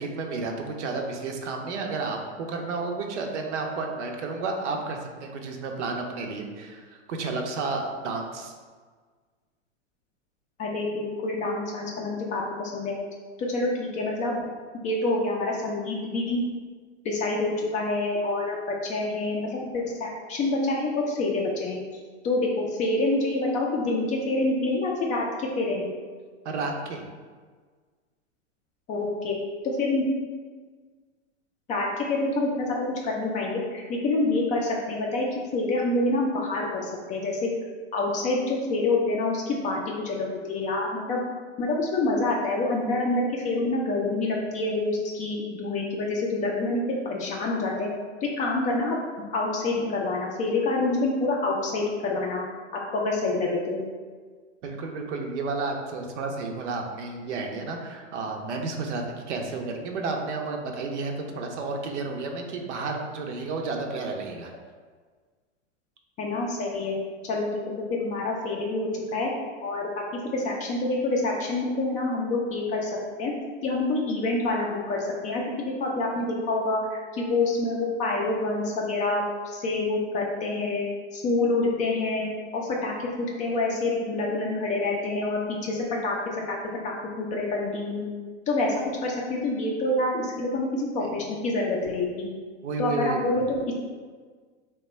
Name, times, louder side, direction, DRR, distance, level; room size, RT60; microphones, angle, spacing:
voice 1, 0.0-8.5 26.4-27.1 54.6-64.5 91.0-91.1 92.6-93.4, right 3 dB, 70° right, 2 dB, 0.7 m, -31 dB
voice 2, 10.6-12.9 13.4-14.4 14.8-16.4 17.0-25.9 28.9-29.4 29.6-30.1 31.7-32.8 33.0-35.3 35.5-37.5 37.9-41.2 41.6-47.9 48.2-49.0 49.3-52.4 52.9-53.8 66.2-66.9 67.3-67.5 67.8-69.3 69.6-70.0 70.3-72.9 73.2-73.3 73.6-80.9 81.1-86.6 86.8-88.1 88.5-92.3 92.8-93.7, left 2 dB, 20° left, -2 dB, 0.4 m, -27 dB
2.9 x 2.2 x 4.0 m, 1.5 s
hypercardioid pair, 110°, 36 cm